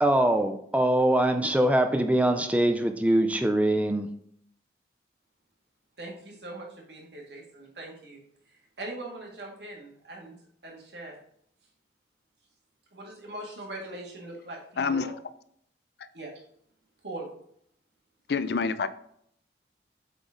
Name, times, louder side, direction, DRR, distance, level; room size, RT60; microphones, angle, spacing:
voice 1, 0.0-4.1, right 1 dB, 10° right, 7 dB, 0.5 m, -23 dB
voice 2, 6.0-8.2 8.8-10.4 10.6-11.2 12.9-15.1 16.1-16.3 17.0-17.3, right 2 dB, 75° right, -1 dB, 2.0 m, -41 dB
voice 3, 14.8-15.1 16.0-16.1 18.3-18.9, left 5 dB, 65° left, 13 dB, 0.4 m, -27 dB
8.1 x 4.2 x 3.7 m, 0.69 s
head